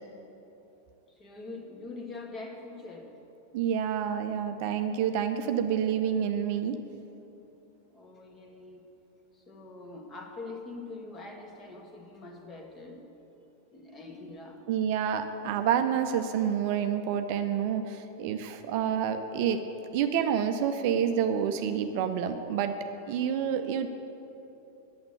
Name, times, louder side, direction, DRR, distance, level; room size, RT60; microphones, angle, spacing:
voice 1, 1.1-3.1 7.8-8.8 9.3-13.0 13.7-14.6 23.7-23.9, left 3 dB, 20° left, 2 dB, 1.5 m, -44 dB
voice 2, 3.5-6.8 14.7-19.6 19.9-22.8 23.1-23.9, right 8 dB, 45° right, 8 dB, 0.5 m, -28 dB
8.9 x 7.5 x 8.7 m, 3.0 s
figure-of-eight pair, 90°, 0 cm